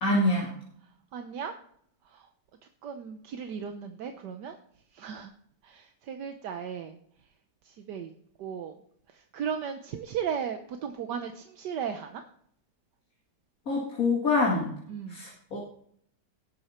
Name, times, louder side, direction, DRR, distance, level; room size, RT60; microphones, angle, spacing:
voice 1, 0.0-0.5 13.7-14.7 15.1-15.6, left 2 dB, 55° left, -3 dB, 2.6 m, -25 dB
voice 2, 1.1-1.5 2.1-2.2 2.8-4.5 4.9-5.3 5.6-7.0 7.7-8.1 8.4-8.8 9.3-12.2 14.9-15.2, right 7 dB, 75° right, 6 dB, 1.5 m, -36 dB
18.5 x 8.1 x 4.4 m, 0.66 s
omnidirectional pair, 1.9 m